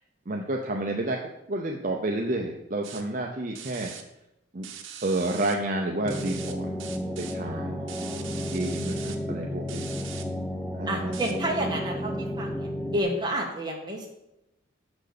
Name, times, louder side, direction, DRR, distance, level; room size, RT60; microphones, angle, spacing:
voice 1, 0.3-1.2 1.5-3.9 4.5-4.7 5.0-6.7 7.2-7.8 8.5-9.8 10.8-11.1, right 2 dB, 40° right, 1 dB, 0.7 m, -30 dB
sound 1, 2.8-3.0 3.6-4.0 4.6-5.5 6.1-6.5 6.8-7.3 7.9-9.2 9.7-10.2 11.1-11.3, right 8 dB, 75° right, 1.0 m, -41 dB
sound 2, 6.0-13.0, equal, 5° left, 0.6 m, -32 dB
voice 2, 7.4-8.7 10.9-14.1, right 1 dB, 20° right, 0 dB, 1.5 m, -31 dB
6.7 x 6.1 x 6.7 m, 0.89 s
head